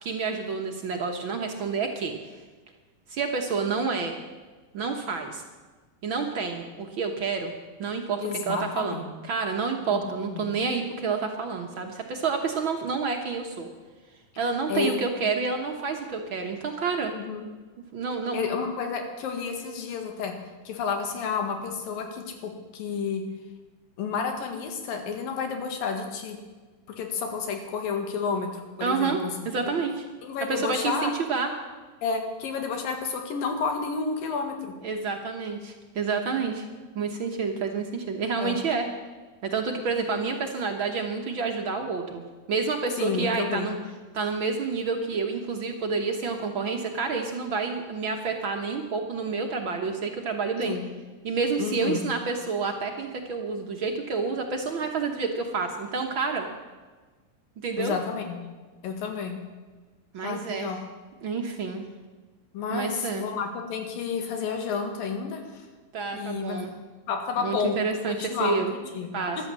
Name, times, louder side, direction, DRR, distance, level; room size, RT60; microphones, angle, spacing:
voice 1, 0.0-2.1 3.1-4.1 4.7-5.4 6.0-7.5 7.8-13.7 14.4-17.1 17.9-18.5 28.8-29.2 29.4-30.0 30.5-31.5 34.8-36.6 36.9-38.9 39.4-42.2 42.5-43.8 44.1-50.8 51.2-56.5 57.6-57.9 60.1-60.7 61.2-61.8 62.7-63.3 65.9-66.7 67.4-68.7 69.1-69.4, right 4 dB, 65° right, 3 dB, 1.2 m, -29 dB
voice 2, 8.2-9.1 9.9-10.0 10.3-10.5 14.7-15.0 17.1-17.4 18.3-20.3 20.7-23.2 24.0-26.4 26.9-29.3 29.6-29.7 30.2-31.1 32.0-34.7 38.4-38.6 43.0-43.7 50.6-50.9 51.6-52.0 57.8-58.4 58.8-59.4 60.2-60.8 62.5-65.6 66.1-66.6 67.1-68.6 68.9-69.1, left 5 dB, 90° left, 4 dB, 3.6 m, -30 dB
14.0 x 12.0 x 7.5 m, 1.3 s
omnidirectional pair, 3.9 m